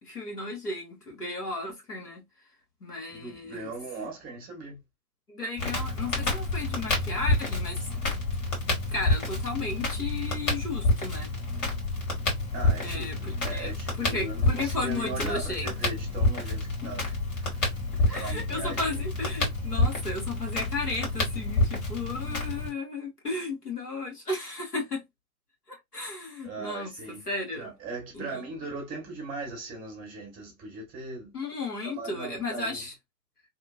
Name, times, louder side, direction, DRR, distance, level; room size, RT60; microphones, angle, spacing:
voice 1, 0.0-2.2 2.8-3.7 5.3-7.9 8.7-11.3 12.8-13.2 13.4-13.7 14.0-15.7 18.1-25.0 25.7-26.9 27.3-27.7 28.1-28.4 31.3-32.9, left 3 dB, 85° left, 1.5 m, -34 dB
voice 2, 3.1-4.8 12.5-19.1 26.4-27.3 27.5-31.4 31.8-32.9, right 3 dB, 20° right, 0.9 m, -39 dB
Crackle, 5.6-22.7, left 2 dB, 55° left, 1.7 m, -29 dB
2.9 x 2.1 x 2.3 m
figure-of-eight pair, 110°, 45 cm